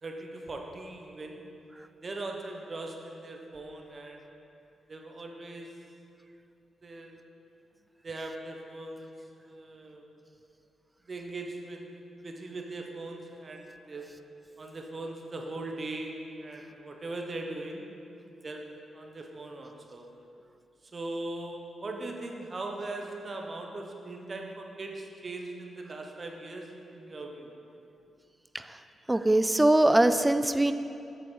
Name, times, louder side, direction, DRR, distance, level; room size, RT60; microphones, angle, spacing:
voice 1, 0.0-1.4 2.0-4.2 4.9-5.7 6.8-7.2 8.0-9.1 9.4-10.0 11.1-11.9 12.2-14.1 14.6-17.9 18.4-18.6 18.9-20.1 20.9-27.5, right 2 dB, 45° right, 2 dB, 1.0 m, -40 dB
voice 2, 29.1-30.7, right 1 dB, 15° right, 10 dB, 0.4 m, -22 dB
8.0 x 6.8 x 3.9 m, 2.7 s
supercardioid pair, 50°, 0 cm